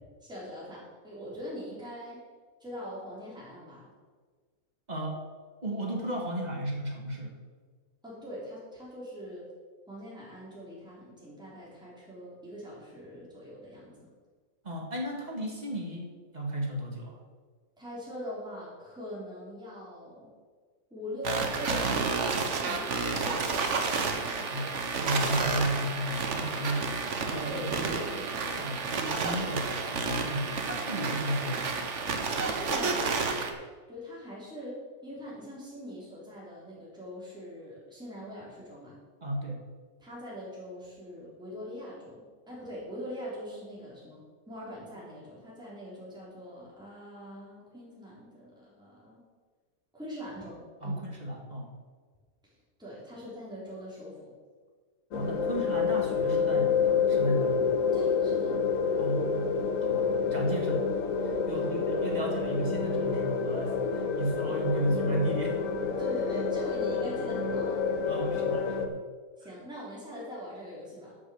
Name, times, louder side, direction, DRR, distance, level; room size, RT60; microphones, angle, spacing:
voice 1, 0.2-2.2 2.6-3.9 8.0-9.5 9.9-14.1 17.8-20.3 20.9-24.8 27.4-28.8 32.4-33.6 33.9-39.0 40.0-44.2 44.5-49.2 49.9-51.0 52.8-54.3 57.9-58.6 61.5-61.8 66.0-67.9 69.4-71.2, equal, 5° right, -8 dB, 3.7 m, -42 dB
voice 2, 4.9-5.2 5.6-7.3 14.6-16.1 16.3-17.1 24.5-24.7 25.0-28.0 28.5-31.7 39.2-39.6 50.8-51.7 55.1-57.7 59.0-59.5 59.8-60.9 61.5-63.8 64.2-65.5 68.1-69.0, right 1 dB, 30° right, 0 dB, 1.8 m, -33 dB
sound 1, 21.2-33.5, right 4 dB, 55° right, 1.3 m, -31 dB
sound 2, 55.1-68.9, left 5 dB, 65° left, 1.2 m, -28 dB
11.5 x 6.5 x 6.4 m, 1.5 s
omnidirectional pair, 1.5 m